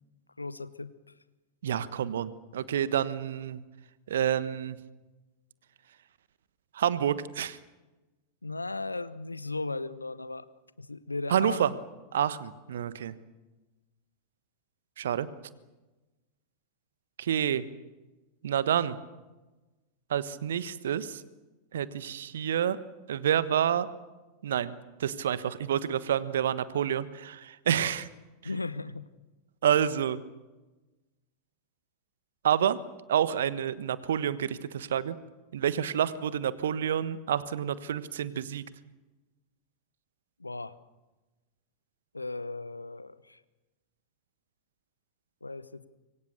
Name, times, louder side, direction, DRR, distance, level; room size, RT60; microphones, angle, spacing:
voice 1, 0.4-0.9 8.4-10.5 10.8-11.6 28.4-29.0 40.4-40.8 42.1-43.4 45.4-45.8, left 3 dB, 80° left, 16 dB, 1.0 m, -36 dB
voice 2, 1.6-3.6 4.1-4.8 6.7-7.6 11.3-11.7 12.1-13.1 15.0-15.3 17.2-17.6 18.4-19.0 20.1-21.2 21.7-22.8 23.1-23.9 24.4-24.7 25.0-28.1 29.6-30.2 32.4-32.8 33.1-35.2 35.5-38.6, right 9 dB, 60° right, 16 dB, 1.3 m, -28 dB
26.0 x 23.5 x 6.7 m, 1.1 s
figure-of-eight pair, 90°, 0 cm